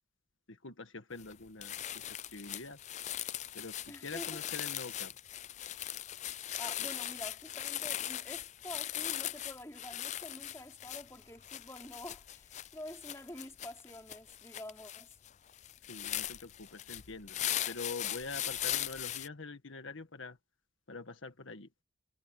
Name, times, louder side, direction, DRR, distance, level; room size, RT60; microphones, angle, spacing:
voice 1, 0.5-2.1 2.3-2.8 3.5-5.2 15.9-17.4 17.7-20.4 20.9-21.7, left 3 dB, 90° left, 1.6 m, -45 dB
sound 1, 1.2-1.3 1.6-19.3, left 12 dB, 35° left, 0.4 m, -39 dB
voice 2, 3.9-4.4 6.3-15.2, left 1 dB, 15° left, 4.8 m, -48 dB
head